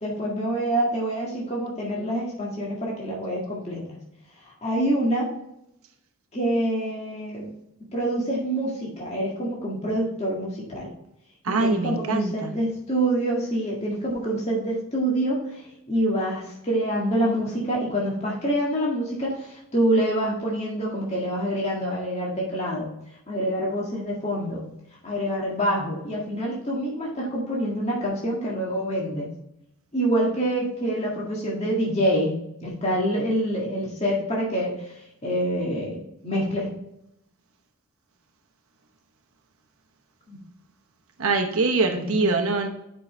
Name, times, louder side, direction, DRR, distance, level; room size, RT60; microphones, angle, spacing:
voice 1, 0.0-4.0 4.6-5.3 6.3-7.5 7.9-10.9 11.5-15.6 15.9-22.9 23.3-24.6 25.0-29.3 29.9-32.3 32.6-34.7 35.2-36.7 40.3-40.4 41.9-42.4, right 1 dB, 30° left, -4 dB, 1.8 m, -26 dB
voice 2, 11.4-12.5 41.2-42.7, right 3 dB, 70° right, 4 dB, 0.9 m, -23 dB
8.4 x 5.5 x 3.2 m, 0.80 s
head